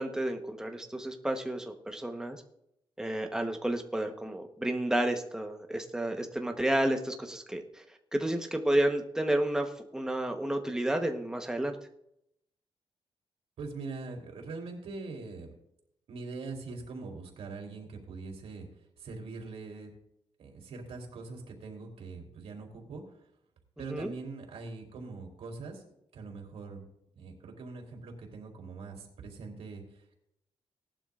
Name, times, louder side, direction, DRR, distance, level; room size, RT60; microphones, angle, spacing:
voice 1, 0.0-2.4 3.0-7.8 8.1-11.8 23.9-24.1, right 1 dB, 5° right, 4 dB, 1.1 m, -31 dB
voice 2, 13.6-15.5 16.1-18.7 19.0-19.9 20.4-23.0 23.8-25.8 26.1-26.9 27.1-30.2, right 3 dB, 90° right, 2 dB, 3.2 m, -42 dB
18.0 x 12.0 x 2.5 m, 0.77 s
wide cardioid pair, 160°, 10 cm